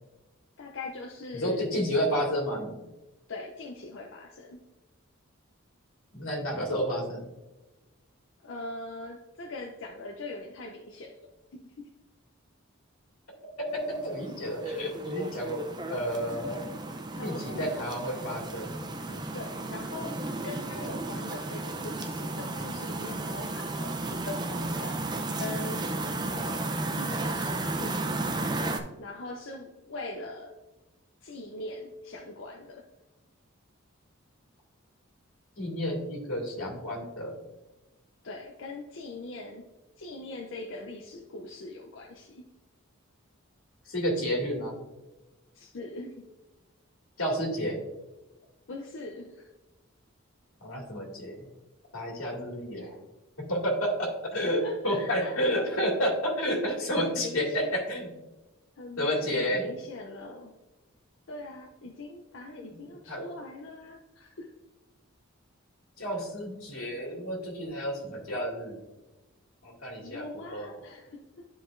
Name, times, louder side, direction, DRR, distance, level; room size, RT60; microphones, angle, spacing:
voice 1, 0.6-1.7 3.3-4.6 8.4-11.2 11.5-11.9 15.4-15.5 17.2-17.9 19.3-25.0 25.4-25.9 26.3-28.1 29.0-30.6 31.2-32.9 38.2-39.7 40.0-42.4 45.5-46.2 48.7-49.5 54.4-55.4 57.0-57.7 58.8-60.5 61.3-64.5 70.0-71.5, left 2 dB, 60° left, 1 dB, 0.6 m, -41 dB
voice 2, 1.3-2.7 6.1-7.3 13.7-15.6 15.9-16.6 17.2-18.7 19.1-19.2 35.6-37.4 43.9-44.8 47.2-47.8 50.6-51.5 51.9-53.0 53.4-58.1 59.0-59.7 63.1-63.2 66.0-68.8 69.6-70.8, equal, 80° left, -1 dB, 2.1 m, -30 dB
sound 1, 13.7-28.8, right 2 dB, 20° right, 0.4 m, -34 dB
10.5 x 4.9 x 2.5 m, 1.1 s
head